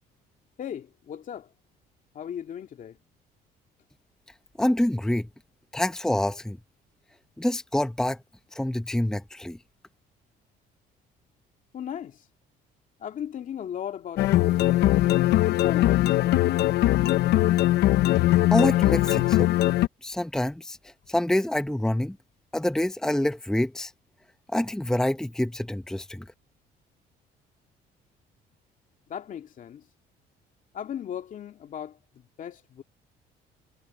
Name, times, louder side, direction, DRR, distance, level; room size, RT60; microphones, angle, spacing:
voice 1, 0.6-1.5 2.1-3.0 11.7-12.2 13.0-15.1 15.5-17.5 29.1-29.9 30.7-32.8, left 9 dB, 50° left, 2.2 m, -37 dB
voice 2, 4.6-5.3 5.7-6.6 7.4-8.2 8.5-9.6 18.5-19.5 20.0-20.8 21.1-22.2 22.5-23.9 24.5-26.2, left 1 dB, 5° left, 1.0 m, -26 dB
sound 1, 14.2-19.9, left 15 dB, 75° left, 0.8 m, -21 dB
cardioid pair, 110°, 17 cm